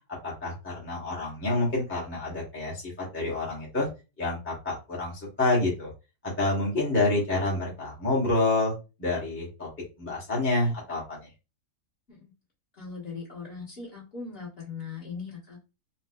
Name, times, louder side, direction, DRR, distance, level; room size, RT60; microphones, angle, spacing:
voice 1, 0.2-3.9 4.2-5.9 6.4-8.7 9.0-9.7 10.0-11.3, left 2 dB, 10° left, -7 dB, 0.9 m, -28 dB
voice 2, 12.7-15.6, left 5 dB, 40° left, -6 dB, 1.6 m, -39 dB
4.1 x 2.3 x 2.2 m, 0.28 s
omnidirectional pair, 1.7 m